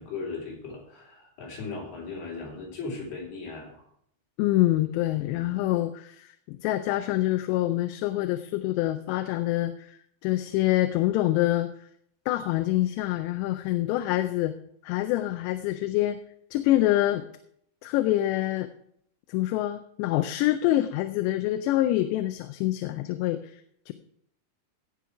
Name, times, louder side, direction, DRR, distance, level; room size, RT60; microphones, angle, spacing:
voice 1, 0.0-3.8 5.3-5.5, left 4 dB, 65° left, -3 dB, 5.2 m, -38 dB
voice 2, 4.4-10.0 10.2-11.7 12.3-14.5 14.8-16.2 16.5-17.3 17.8-18.7 19.3-23.6 23.9-24.0, left 15 dB, 85° left, 9 dB, 2.8 m, -26 dB
16.5 x 6.1 x 4.7 m, 0.69 s
omnidirectional pair, 5.0 m